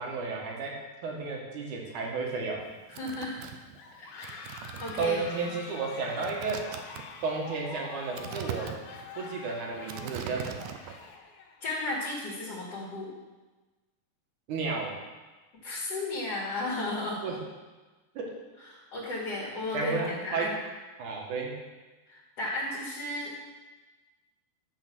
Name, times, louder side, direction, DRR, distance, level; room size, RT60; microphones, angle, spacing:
voice 1, 0.0-2.6 5.0-6.6 7.2-8.7 9.2-10.7 14.5-14.9 17.2-17.4 18.1-18.3 19.7-20.5 21.0-21.5, right 4 dB, 60° right, -1 dB, 3.0 m, -32 dB
sound 1, 2.6-11.1, right 8 dB, 85° right, 2.7 m, -42 dB
voice 2, 2.9-3.4 4.0-4.4 4.8-5.2 11.6-13.1 15.6-17.2 18.9-20.5 22.1-23.4, left 2 dB, 45° left, -7 dB, 3.2 m, -34 dB
sound 2, 3.7-11.6, left 5 dB, 80° left, 2.9 m, -45 dB
12.0 x 7.6 x 6.2 m, 1.2 s
omnidirectional pair, 4.4 m